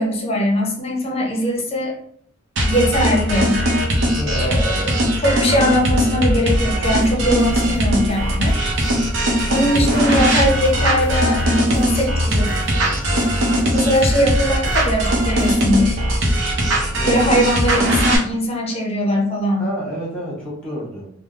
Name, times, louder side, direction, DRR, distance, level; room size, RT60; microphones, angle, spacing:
voice 1, 0.0-1.9 2.7-3.6 4.3-8.9 9.5-12.7 13.7-16.0 17.1-19.7, equal, 30° left, -1 dB, 0.6 m, -21 dB
sound 1, 2.6-18.2, equal, 70° right, 0.6 m, -19 dB
voice 2, 4.2-4.6 9.7-10.1 16.9-17.4 19.6-21.1, equal, 5° left, -6 dB, 1.0 m, -30 dB
sound 2, 6.8-15.9, equal, 35° right, 0.6 m, -35 dB
3.3 x 2.0 x 2.4 m, 0.64 s
head